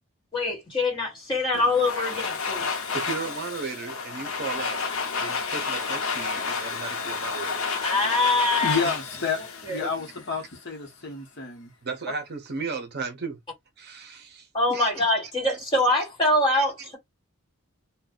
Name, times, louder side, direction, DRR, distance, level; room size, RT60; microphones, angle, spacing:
voice 1, 0.3-2.7 7.8-8.8 9.6-9.9 14.5-17.0, left 2 dB, 20° left, 1.7 m, -24 dB
Domestic sounds home sounds, 1.5-10.5, left 5 dB, 70° left, 0.7 m, -31 dB
voice 2, 2.9-4.8 5.2-7.7 8.8-8.9 11.8-13.4 13.8-15.1 16.5-16.9, right 4 dB, 45° right, 0.7 m, -35 dB
voice 3, 8.6-9.4 9.7-11.7, left 4 dB, 50° left, 0.9 m, -30 dB
2.6 x 2.2 x 3.7 m
head